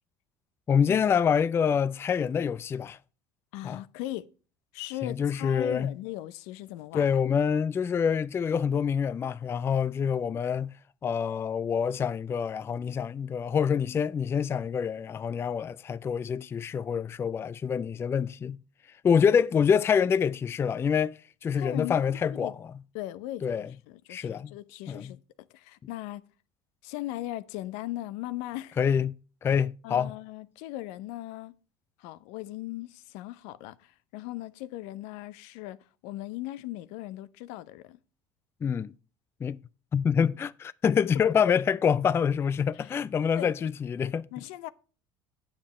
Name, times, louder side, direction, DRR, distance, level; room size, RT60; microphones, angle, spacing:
voice 1, 0.7-3.0 3.6-3.8 5.0-5.9 6.9-10.7 11.0-18.6 19.0-22.5 23.4-23.7 24.1-24.5 24.9-25.1 28.8-29.1 29.4-30.1 38.6-38.9 39.4-39.6 39.9-44.3, left 7 dB, 20° left, 0.3 m, -26 dB
voice 2, 3.5-4.3 4.7-7.1 21.5-22.0 22.4-22.5 22.9-25.2 25.5-26.2 26.8-28.8 29.8-31.5 32.0-35.8 36.0-38.0 42.7-42.9 43.3-43.7 44.3-44.7, left 15 dB, 75° left, 0.7 m, -38 dB
8.8 x 7.4 x 4.2 m
supercardioid pair, 110°, 11 cm